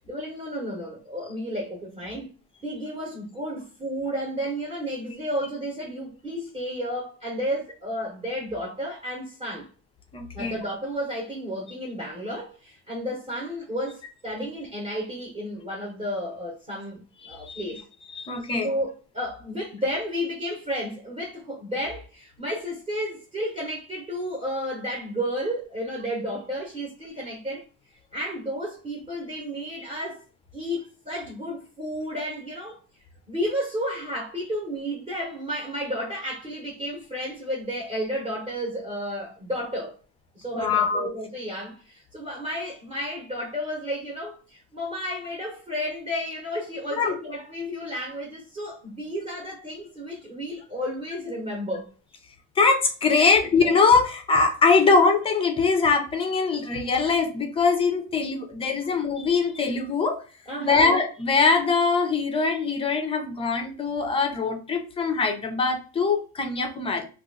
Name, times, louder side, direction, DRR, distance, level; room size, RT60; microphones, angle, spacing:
voice 1, 0.0-2.3 2.6-9.7 10.3-17.8 18.6-27.6 28.1-30.2 30.5-32.8 33.3-40.0 40.3-51.9 53.2-53.6 58.8-58.9 60.5-61.0, equal, 20° right, 0.8 m, -32 dB
voice 2, 10.1-10.5 17.2-17.6 18.2-18.7 40.5-41.1 47.0-47.2 52.6-60.2 60.6-67.0, left 4 dB, 20° left, 0.4 m, -22 dB
2.8 x 2.4 x 3.7 m
cardioid pair, 175°, 32 cm